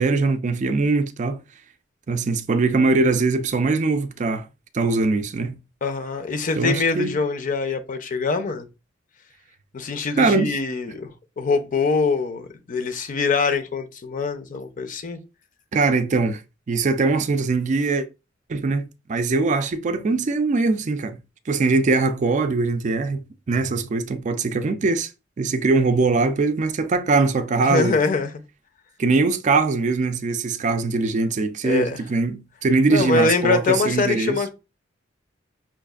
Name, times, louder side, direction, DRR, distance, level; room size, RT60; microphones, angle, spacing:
voice 1, 0.0-1.4 2.1-4.5 4.7-5.6 6.6-7.1 10.2-10.5 15.7-16.4 16.7-18.1 18.5-21.2 21.5-23.2 23.5-25.1 25.4-28.0 29.0-34.4, right 3 dB, 40° right, 0.4 m, -21 dB
voice 2, 5.8-8.7 9.7-11.1 11.4-15.2 27.6-28.4 31.6-32.0 32.9-34.5, left 4 dB, 45° left, 0.6 m, -23 dB
5.7 x 2.4 x 2.4 m
head